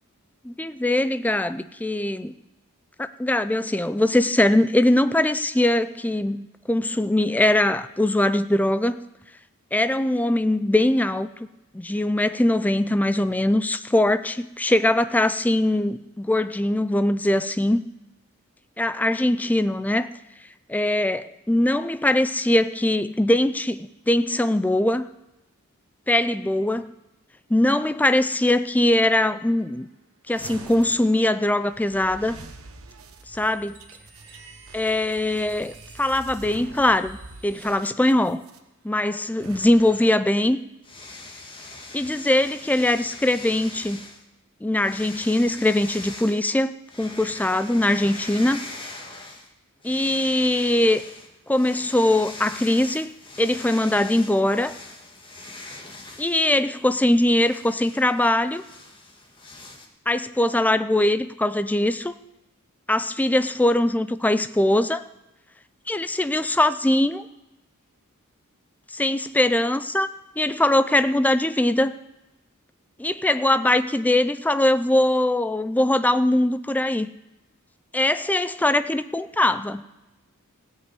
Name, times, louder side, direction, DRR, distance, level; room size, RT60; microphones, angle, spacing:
voice 1, 0.4-2.3 3.0-9.0 9.7-11.3 11.7-17.8 18.8-20.1 20.7-25.0 26.1-26.9 27.5-29.9 30.3-32.4 33.3-33.8 34.7-38.4 38.8-40.6 41.9-44.0 44.6-46.7 47.0-48.7 49.8-51.0 51.5-53.1 53.4-54.7 56.2-58.6 60.1-62.1 62.9-65.0 65.9-67.3 68.9-70.1 70.4-71.9 73.0-77.1 77.9-79.8, left 1 dB, 5° left, 12 dB, 0.4 m, -21 dB
sound 1, 30.3-38.6 39.3-40.1, right 3 dB, 70° right, 1.1 m, -44 dB
sound 2, 40.8-44.2 44.8-46.4 46.9-49.5 49.8-59.9, left 2 dB, 25° left, 1.5 m, -42 dB
16.0 x 5.6 x 7.9 m, 0.96 s
head